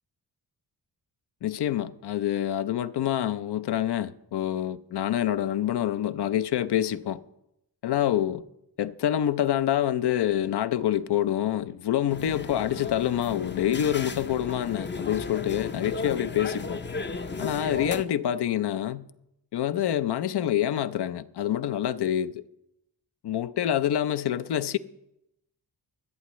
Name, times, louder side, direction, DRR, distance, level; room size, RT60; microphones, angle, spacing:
voice 1, 1.4-7.2 7.8-8.4 8.8-16.8 17.4-19.1 19.5-22.4 23.2-24.8, left 11 dB, 70° left, 0.6 m, -26 dB
sound 1, 12.1-18.1, left 4 dB, 25° left, 0.6 m, -35 dB
22.5 x 8.3 x 3.1 m
cardioid pair, 65°, 42 cm